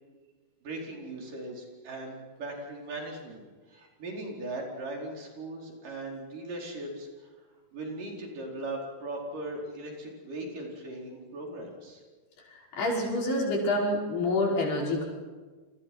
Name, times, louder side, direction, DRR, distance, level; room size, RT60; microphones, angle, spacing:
voice 1, 0.6-3.4 3.7-7.3 7.7-12.0, right 2 dB, 55° right, 0 dB, 6.1 m, -39 dB
voice 2, 12.5-15.0, left 2 dB, 85° left, -2 dB, 7.6 m, -27 dB
28.5 x 25.5 x 6.2 m, 1.4 s
omnidirectional pair, 4.5 m